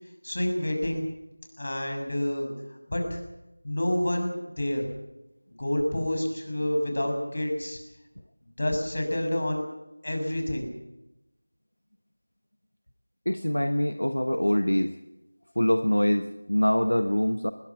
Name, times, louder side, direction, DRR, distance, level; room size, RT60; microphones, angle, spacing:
voice 1, 0.2-1.1 1.6-2.5 2.9-3.2 3.6-4.8 5.6-7.8 8.6-9.6 10.0-10.7, left 1 dB, 50° left, 4 dB, 6.5 m, -28 dB
voice 2, 13.3-14.9 15.6-17.5, left 1 dB, 85° left, 9 dB, 1.2 m, -24 dB
21.5 x 19.5 x 7.3 m, 0.97 s
figure-of-eight pair, 175°, 0 cm